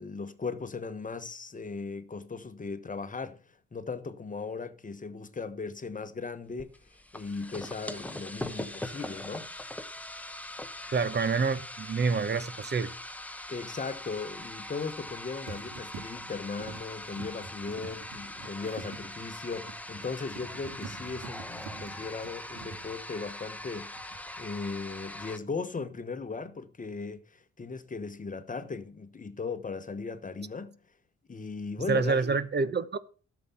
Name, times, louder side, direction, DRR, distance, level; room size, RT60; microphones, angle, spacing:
voice 1, 0.0-3.4 3.7-6.7 7.1-9.5 13.5-30.8 31.3-32.3, left 4 dB, 25° left, 1.1 m, -38 dB
sound 1, 6.6-25.4, left 1 dB, 5° left, 1.0 m, -42 dB
voice 2, 10.9-12.9 31.9-33.0, right 4 dB, 35° right, 1.0 m, -27 dB
sound 2, 11.5-11.7 14.8-15.2 15.5-23.7 24.0-24.4, right 6 dB, 85° right, 1.8 m, -47 dB
12.0 x 7.0 x 5.8 m
cardioid pair, 90°, 30 cm